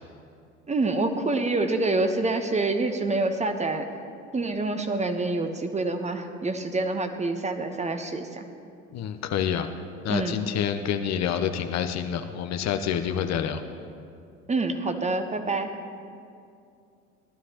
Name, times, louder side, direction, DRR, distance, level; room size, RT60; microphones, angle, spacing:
voice 1, 0.7-3.9 4.3-8.5 10.1-10.4 14.5-15.7, right 2 dB, 20° right, 7 dB, 1.0 m, -26 dB
voice 2, 8.9-9.7 10.0-13.6, left 8 dB, 45° left, 7 dB, 0.8 m, -27 dB
18.5 x 12.5 x 2.9 m, 2.4 s
hypercardioid pair, 65°, 37 cm